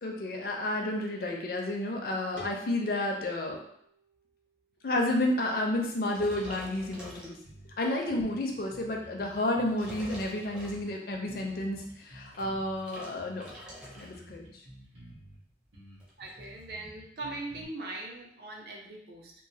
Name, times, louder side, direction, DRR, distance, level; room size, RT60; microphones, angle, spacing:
voice 1, 0.0-3.6 4.8-7.4 7.8-13.5 14.0-14.6, left 1 dB, 50° left, 1 dB, 0.5 m, -31 dB
sound 1, 2.4-5.2, left 3 dB, 85° left, 0.7 m, -52 dB
sound 2, 6.1-7.8 8.4-8.6 9.4-11.2 12.0-14.3 14.5-14.9 15.2-15.3 15.5-16.6, equal, 5° right, 0.4 m, -47 dB
sound 3, 7.4-7.7 8.1-10.3 10.6-12.8 13.2-15.4 15.7-17.7, equal, 90° right, 1.1 m, -52 dB
voice 2, 16.2-19.3, right 2 dB, 55° right, -1 dB, 0.6 m, -40 dB
3.0 x 2.0 x 2.7 m, 0.69 s
head